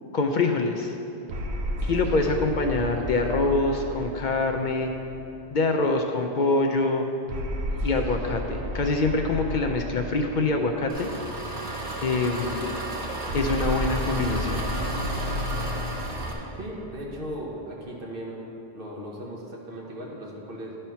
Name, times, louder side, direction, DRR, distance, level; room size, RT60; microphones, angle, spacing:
voice 1, 0.1-0.9 1.8-4.9 5.5-7.1 7.7-11.1 12.0-12.7 13.3-14.7, left 3 dB, 55° left, 3 dB, 0.6 m, -25 dB
sound 1, 1.3-5.9 7.3-11.7 13.3-17.9, equal, 85° right, 1.1 m, -33 dB
Engine, 10.9-16.3, right 1 dB, 40° right, 1.2 m, -32 dB
voice 2, 16.5-18.5 18.7-20.8, equal, 60° right, -2 dB, 1.4 m, -37 dB
10.5 x 4.4 x 5.6 m, 2.7 s
omnidirectional pair, 1.0 m